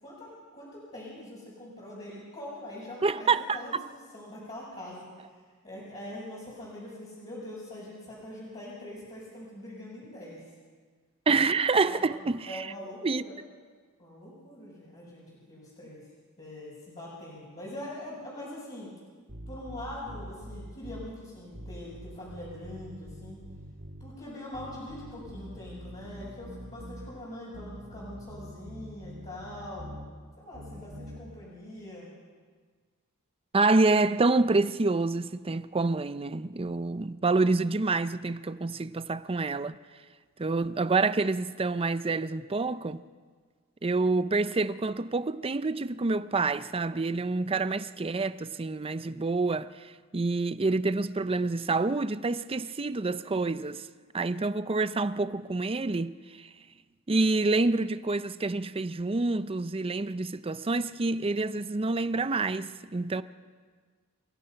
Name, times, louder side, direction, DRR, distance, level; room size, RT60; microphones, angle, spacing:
voice 1, 0.0-3.7 4.1-5.1 5.6-10.4 11.9-12.1 12.4-13.4 14.0-16.0 16.4-18.9 19.5-23.4 24.0-32.1, left 1 dB, 30° left, 6.3 m, -43 dB
voice 2, 3.0-3.8 11.3-12.7 13.0-13.2 33.5-39.7 40.4-43.0 43.8-53.9 54.1-56.5 57.1-63.2, right 3 dB, 25° right, 0.6 m, -27 dB
sound 1, 19.3-21.1 21.5-24.1 24.5-27.1 27.5-30.1 30.5-31.2, equal, 55° right, 4.4 m, -44 dB
29.0 x 16.0 x 5.8 m
head